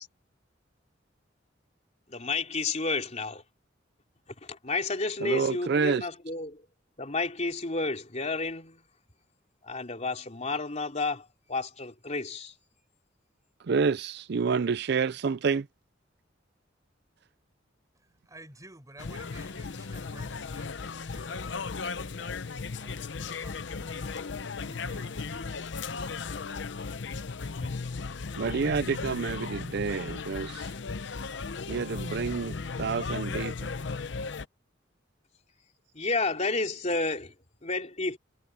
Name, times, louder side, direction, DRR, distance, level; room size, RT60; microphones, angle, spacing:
voice 1, 2.1-3.4 4.4-6.6 7.0-8.8 9.6-12.5 35.9-37.3 37.6-38.2, left 3 dB, 40° left, 3.3 m, -31 dB
voice 2, 5.2-6.1 13.7-15.7 28.4-30.7 31.7-33.5, right 5 dB, 60° right, 0.5 m, -28 dB
voice 3, 17.9-26.9, right 2 dB, 20° right, 5.6 m, -54 dB
sound 1, 19.0-34.5, left 4 dB, 70° left, 0.7 m, -36 dB
head